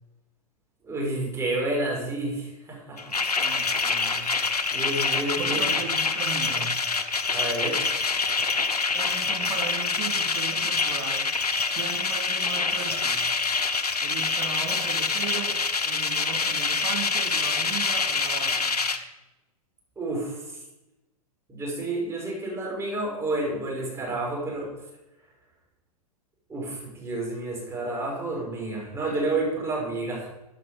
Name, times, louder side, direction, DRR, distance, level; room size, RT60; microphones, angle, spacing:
voice 1, 0.8-3.0 4.7-5.6 7.3-7.8 20.0-20.6 21.5-24.7 26.5-30.3, right 2 dB, 15° right, -2 dB, 5.8 m, -30 dB
sound 1, 3.0-19.0, left 4 dB, 80° left, 1.3 m, -26 dB
voice 2, 3.4-4.3 5.4-6.7 8.9-11.3 11.7-13.3 14.0-18.8 27.3-27.4, right 6 dB, 40° right, 2 dB, 3.3 m, -37 dB
15.5 x 10.5 x 5.2 m, 0.97 s
figure-of-eight pair, 105°, 20 cm